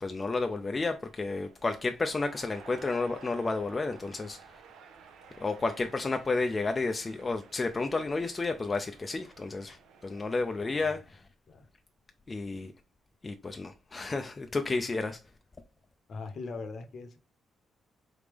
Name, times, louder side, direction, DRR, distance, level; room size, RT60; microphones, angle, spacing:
voice 1, 0.0-4.4 5.4-9.8 10.0-11.2 12.3-12.7 13.2-15.2, left 3 dB, 25° left, 0.4 m, -31 dB
sound 1, 1.0-11.0, right 6 dB, 90° right, 0.7 m, -54 dB
voice 2, 10.6-11.0 11.5-11.7 16.1-17.2, left 4 dB, 55° left, 0.8 m, -41 dB
3.9 x 3.3 x 3.4 m
cardioid pair, 100°, 0 cm